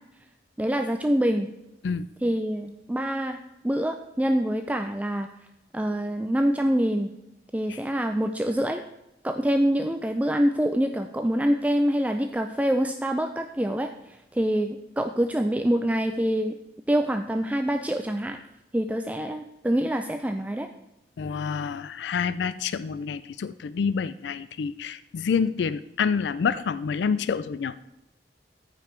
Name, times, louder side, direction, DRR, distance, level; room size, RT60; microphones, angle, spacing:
voice 1, 0.6-1.5 2.2-3.4 3.6-5.3 5.7-7.1 7.5-8.8 9.2-16.5 16.9-18.4 18.7-20.7, equal, 10° right, 6 dB, 0.3 m, -25 dB
voice 2, 21.2-27.8, left 6 dB, 80° left, 14 dB, 0.4 m, -28 dB
14.0 x 5.3 x 4.4 m, 0.94 s
head